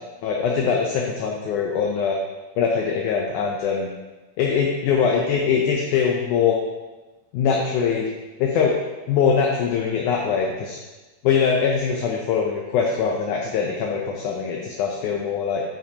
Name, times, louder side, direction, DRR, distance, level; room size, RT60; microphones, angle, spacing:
voice 1, 0.2-2.2 2.6-3.9 4.4-6.6 7.3-8.1 8.4-8.8 9.1-10.8 11.2-15.6, left 6 dB, 75° left, 0 dB, 1.9 m, -22 dB
9.3 x 7.0 x 2.8 m, 1.2 s
omnidirectional pair, 4.2 m